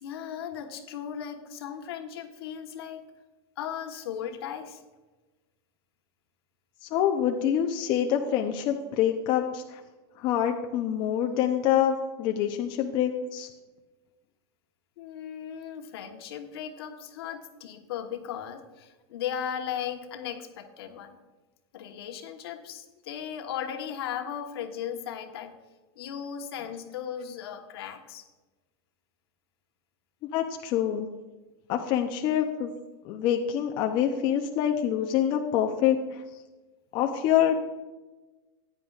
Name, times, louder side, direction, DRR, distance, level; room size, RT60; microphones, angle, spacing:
voice 1, 0.0-3.0 3.6-4.8 15.0-21.2 21.7-25.5 26.0-28.2, left 9 dB, 70° left, 5 dB, 1.2 m, -37 dB
voice 2, 6.9-9.8 10.2-13.5 30.3-31.1 31.7-32.7 33.0-36.2 36.9-37.6, left 10 dB, 35° left, 4 dB, 0.7 m, -26 dB
14.5 x 9.8 x 2.4 m, 1.2 s
supercardioid pair, 150°, 13 cm